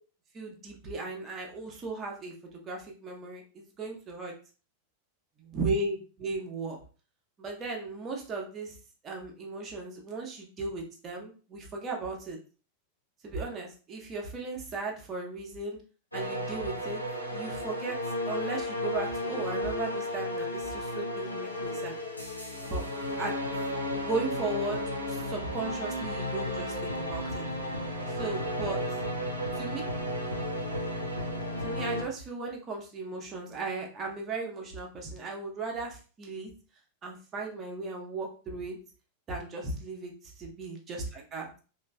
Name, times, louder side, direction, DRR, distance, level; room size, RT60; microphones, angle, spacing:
voice 1, 0.3-4.3 5.4-6.8 7.4-8.8 9.0-12.4 13.2-15.8 16.1-17.0 17.3-18.0 18.2-22.0 22.7-22.8 23.2-23.4 24.0-27.4 28.1-28.8 29.5-29.8 31.6-36.5 37.0-38.8 39.3-41.5, right 3 dB, 25° right, 0 dB, 0.8 m, -36 dB
sound 1, 16.1-32.0, left 1 dB, 85° left, 0.5 m, -33 dB
3.1 x 2.5 x 2.2 m, 0.37 s
figure-of-eight pair, 90°, 0 cm